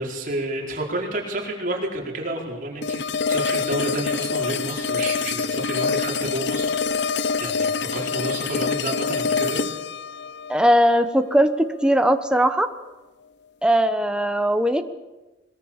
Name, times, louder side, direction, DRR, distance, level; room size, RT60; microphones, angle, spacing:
voice 1, 0.0-3.0 3.3-9.6, right 1 dB, 45° right, -1 dB, 4.8 m, -30 dB
sound 1, 2.8-11.8, left 5 dB, 70° left, 0.7 m, -26 dB
voice 2, 10.5-11.5 11.8-12.7 13.6-14.8, equal, 5° right, 8 dB, 1.1 m, -19 dB
22.0 x 21.5 x 7.4 m, 1.1 s
head